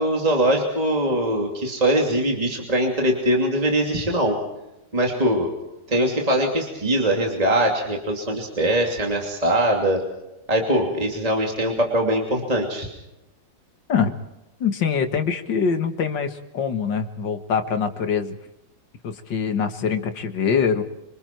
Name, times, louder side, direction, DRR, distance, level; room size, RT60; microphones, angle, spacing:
voice 1, 0.0-4.4 4.9-5.5 5.9-10.0 10.5-12.9, right 1 dB, 20° right, 0 dB, 2.9 m, -22 dB
voice 2, 14.6-18.4 19.0-20.8, left 6 dB, 85° left, 7 dB, 2.3 m, -24 dB
26.5 x 25.5 x 4.6 m, 0.93 s
omnidirectional pair, 1.9 m